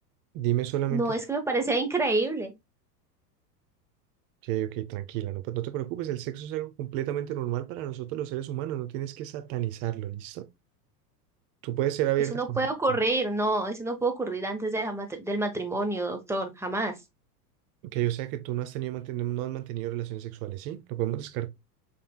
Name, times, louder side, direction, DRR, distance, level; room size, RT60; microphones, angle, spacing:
voice 1, 0.3-1.1 4.4-10.5 11.6-13.0 17.8-21.5, right 13 dB, 50° right, 0.7 m, -31 dB
voice 2, 0.9-2.5 12.3-16.9, right 2 dB, 5° right, 1.0 m, -28 dB
5.4 x 3.4 x 2.3 m
hypercardioid pair, 100°, 49 cm